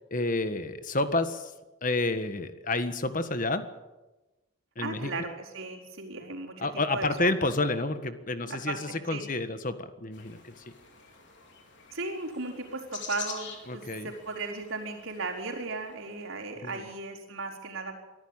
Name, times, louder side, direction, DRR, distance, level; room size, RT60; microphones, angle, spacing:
voice 1, 0.1-1.5 1.8-3.6 4.8-5.1 6.6-10.5 13.7-14.1 16.6-16.8, left 2 dB, 40° left, 10 dB, 1.6 m, -29 dB
voice 2, 4.8-7.5 8.5-9.2 11.9-17.9, right 3 dB, 80° right, -8 dB, 4.3 m, -36 dB
sound 1, 10.1-16.3, left 6 dB, 55° left, 4.5 m, -46 dB
24.0 x 14.5 x 9.1 m, 1.1 s
head